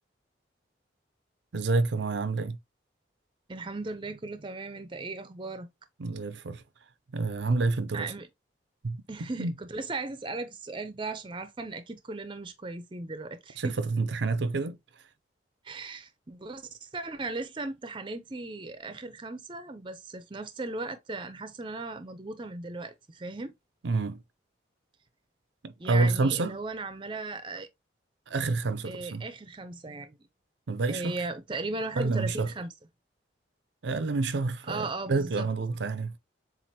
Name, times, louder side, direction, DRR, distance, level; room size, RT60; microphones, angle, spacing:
voice 1, 1.5-2.6 6.0-6.6 7.1-8.1 8.8-9.5 13.6-14.8 23.8-24.2 25.6-26.6 28.3-29.3 30.7-31.2 32.0-32.5 33.8-36.2, right 3 dB, 75° right, 0.5 m, -28 dB
voice 2, 3.5-5.7 7.9-8.3 9.1-13.8 15.6-23.5 25.8-27.7 28.8-30.2 30.9-32.7 34.7-35.5, right 3 dB, 25° right, 0.5 m, -37 dB
7.4 x 2.5 x 2.8 m
head